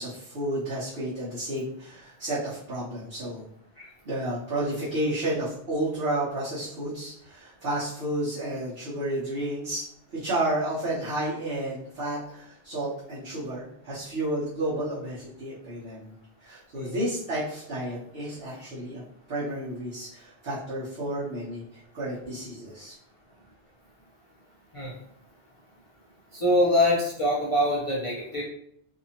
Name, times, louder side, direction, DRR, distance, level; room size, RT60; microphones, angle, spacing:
voice 1, 0.0-3.4 4.0-9.8 10.1-16.1 16.4-19.0 19.3-22.9, right 1 dB, 65° right, -9 dB, 1.0 m, -31 dB
voice 2, 26.3-28.4, left 1 dB, 45° left, -6 dB, 0.4 m, -24 dB
2.6 x 2.6 x 2.8 m, 0.73 s
omnidirectional pair, 1.1 m